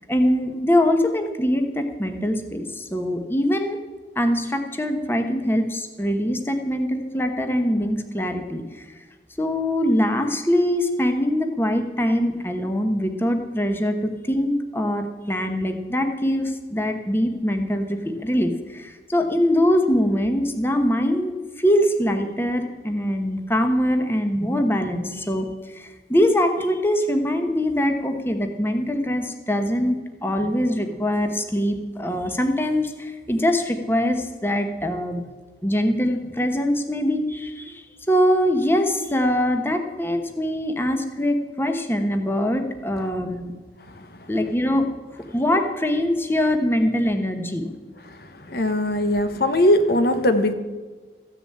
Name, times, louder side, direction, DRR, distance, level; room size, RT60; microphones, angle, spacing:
voice 1, 0.1-3.8 4.2-8.8 9.4-35.2 35.6-43.5 44.3-44.9 45.3-47.7, equal, 15° left, 5 dB, 1.1 m, -23 dB
voice 2, 48.5-50.5, left 1 dB, 60° left, 8 dB, 1.1 m, -19 dB
14.5 x 7.0 x 8.7 m, 1.3 s
head